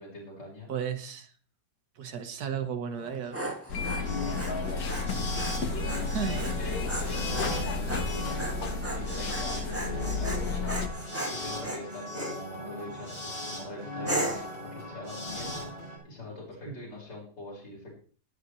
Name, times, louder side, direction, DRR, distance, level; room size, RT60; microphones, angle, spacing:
voice 1, 0.0-0.7 5.7-6.0 6.3-10.9 11.3-14.4 14.7-15.6 16.0-17.9, left 1 dB, 90° left, -6 dB, 5.3 m, -43 dB
voice 2, 0.7-1.3 2.0-3.6 6.1-6.5 16.6-16.8, right 7 dB, 65° right, 7 dB, 1.9 m, -34 dB
Dog, 2.9-12.4 12.9-13.3 14.0-14.6, right 1 dB, 10° right, 2.0 m, -37 dB
sound 1, 3.7-10.9, left 4 dB, 60° left, 1.8 m, -32 dB
sound 2, 3.8-16.0, left 1 dB, 35° left, 6.8 m, -38 dB
23.0 x 8.2 x 3.2 m, 0.42 s
omnidirectional pair, 1.8 m